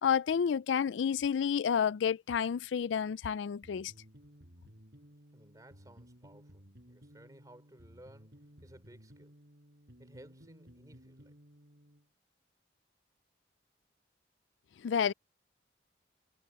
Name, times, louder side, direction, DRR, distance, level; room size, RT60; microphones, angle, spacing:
voice 1, 0.0-3.9 14.8-15.1, left 7 dB, 90° left, 0.4 m, -30 dB
sound 1, 3.6-12.1, equal, 60° right, 5.3 m, -57 dB
voice 2, 5.3-9.3 10.0-11.3, right 1 dB, 20° right, 3.4 m, -58 dB
head